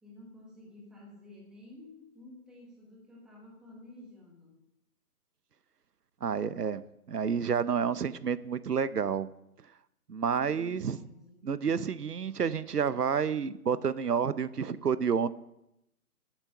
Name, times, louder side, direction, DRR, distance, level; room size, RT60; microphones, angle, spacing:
voice 1, 0.0-4.7 10.3-11.4, left 2 dB, ahead, -3 dB, 1.0 m, -52 dB
voice 2, 6.2-6.8 7.1-9.3 10.1-11.0 11.4-15.3, right 6 dB, 85° right, 16 dB, 0.8 m, -29 dB
12.5 x 8.9 x 5.5 m, 0.83 s
figure-of-eight pair, 145°, 46 cm